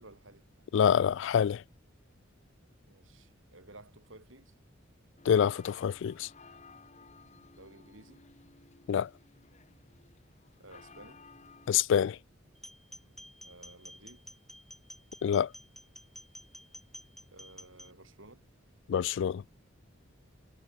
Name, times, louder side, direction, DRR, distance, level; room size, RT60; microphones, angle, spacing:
voice 1, 0.0-0.7 2.9-4.5 7.5-8.2 10.6-11.2 13.4-14.3 17.3-18.4, right 2 dB, 75° right, 7.4 m, -55 dB
voice 2, 0.7-1.6 5.3-6.3 8.9-9.1 11.7-12.2 15.2-15.5 18.9-19.4, left 8 dB, 65° left, 0.3 m, -26 dB
sound 1, 5.2-11.7, left 4 dB, 35° left, 2.1 m, -57 dB
sound 2, 12.5-17.9, left 1 dB, ahead, 7.8 m, -51 dB
head